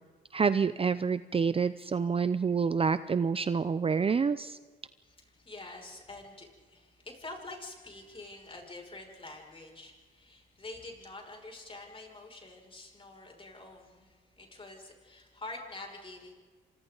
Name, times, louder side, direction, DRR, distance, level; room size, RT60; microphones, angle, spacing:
voice 1, 0.3-4.6, right 5 dB, 30° right, 13 dB, 0.6 m, -28 dB
voice 2, 5.0-16.3, left 2 dB, 25° left, 1 dB, 6.3 m, -47 dB
29.0 x 26.0 x 4.0 m, 1.5 s
cardioid pair, 90°, 20 cm